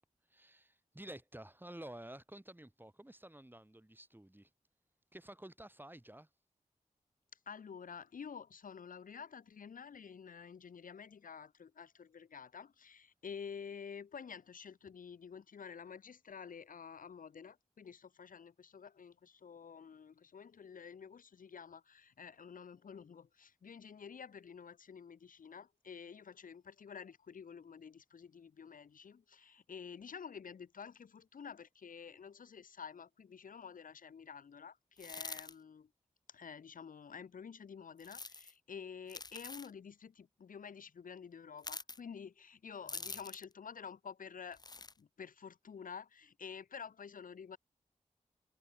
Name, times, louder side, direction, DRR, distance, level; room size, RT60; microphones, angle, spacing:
voice 1, 0.3-4.5 5.1-6.3 42.8-43.2, right 1 dB, 15° right, 4.4 m, -52 dB
voice 2, 7.5-35.9 36.3-44.6 45.0-47.6, left 6 dB, 85° left, 1.0 m, -50 dB
sound 1, 35.0-35.5 38.0-38.5 39.1-39.7 41.6-42.0 42.9-43.5 44.5-44.9, left 3 dB, 30° left, 0.6 m, -45 dB
cardioid pair, 50°, 14 cm